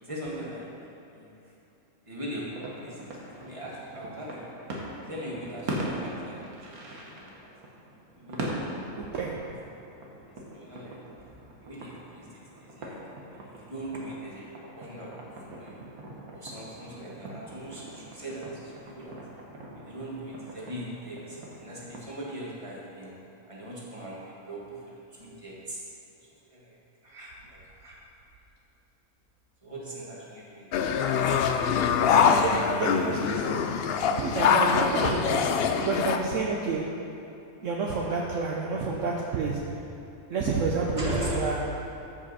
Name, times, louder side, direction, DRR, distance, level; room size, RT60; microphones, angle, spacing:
voice 1, 0.0-0.7 1.1-1.3 2.1-2.4 2.8-3.0 3.4-4.6 5.0-7.5 8.2-8.6 9.4-9.5 10.5-11.0 11.6-12.3 12.6-13.0 13.3-15.8 16.3-19.2 19.7-23.1 23.5-25.8 26.5-26.8 27.0-28.0 29.6-30.9 31.5-31.7 41.0-41.4, right 1 dB, 20° right, -5 dB, 1.7 m, -40 dB
sound 1, 2.6-22.0, right 1 dB, 85° right, 1.7 m, -41 dB
voice 2, 9.0-9.4 31.9-33.6 34.1-35.4 35.8-36.8 37.6-39.6 40.3-41.6, right 4 dB, 65° right, -2 dB, 1.1 m, -29 dB
sound 2, 30.7-36.2, left 7 dB, 70° left, 0.5 m, -24 dB
13.5 x 5.4 x 4.2 m, 2.9 s
omnidirectional pair, 1.5 m